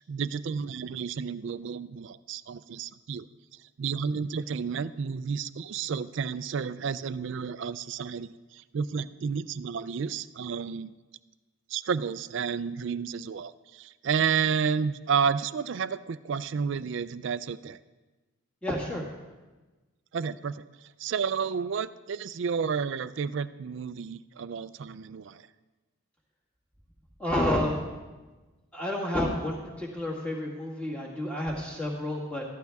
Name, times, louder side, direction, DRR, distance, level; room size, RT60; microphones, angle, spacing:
voice 1, 0.0-3.3 3.8-10.9 11.7-17.8 20.1-20.6 21.0-25.5, right 6 dB, 55° right, 15 dB, 0.3 m, -31 dB
voice 2, 18.6-19.1 27.2-27.8 28.7-32.4, left 1 dB, 5° left, -3 dB, 1.9 m, -30 dB
14.0 x 11.5 x 3.5 m, 1.2 s
head